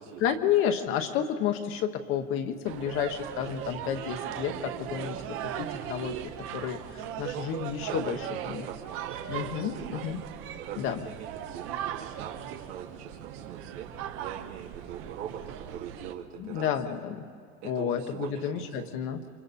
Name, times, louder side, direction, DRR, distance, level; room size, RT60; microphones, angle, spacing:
voice 1, 0.2-6.2 6.5-8.2 8.5-8.6 9.3-10.2 10.8-11.0 16.4-17.2 17.6-19.2, left 9 dB, 40° left, 6 dB, 1.0 m, -31 dB
sound 1, 2.6-16.1, right 10 dB, 35° right, 0.9 m, -38 dB
voice 2, 7.9-10.1 10.5-13.9 14.2-17.0 17.6-18.9, right 9 dB, 90° right, -2 dB, 2.3 m, -42 dB
29.0 x 25.5 x 4.2 m, 2.3 s
cardioid pair, 175°, 35 cm